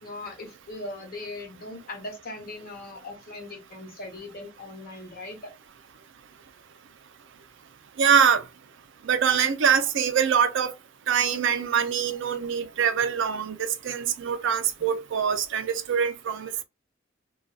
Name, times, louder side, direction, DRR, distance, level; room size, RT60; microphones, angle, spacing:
voice 1, 0.0-5.6 12.6-12.7, left 2 dB, 50° left, 0.9 m, -39 dB
voice 2, 8.0-8.4 9.1-10.7 11.1-16.6, right 7 dB, 65° right, 0.4 m, -24 dB
2.5 x 2.3 x 2.2 m
head